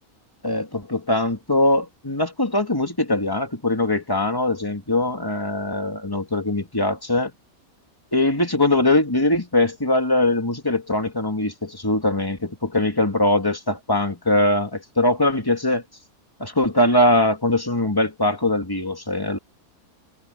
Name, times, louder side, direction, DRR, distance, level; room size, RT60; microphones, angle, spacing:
voice 1, 0.4-7.3 8.1-15.8 16.4-19.4, left 1 dB, 15° left, 2.4 m, -21 dB
omnidirectional pair, 1.5 m